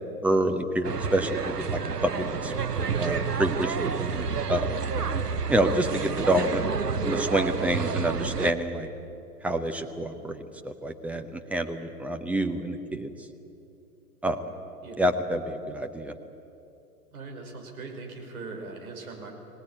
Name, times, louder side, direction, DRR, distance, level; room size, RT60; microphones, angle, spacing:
voice 1, 0.2-2.5 3.0-4.8 5.5-6.6 7.0-8.9 9.4-13.1 14.2-14.4 15.0-16.1, right 1 dB, 5° right, 6 dB, 0.7 m, -28 dB
sound 1, 0.8-8.5, right 5 dB, 80° right, 1.0 m, -29 dB
voice 2, 17.1-19.4, right 3 dB, 65° right, 1 dB, 5.7 m, -40 dB
24.0 x 18.0 x 8.9 m, 2.8 s
figure-of-eight pair, 105°, 47 cm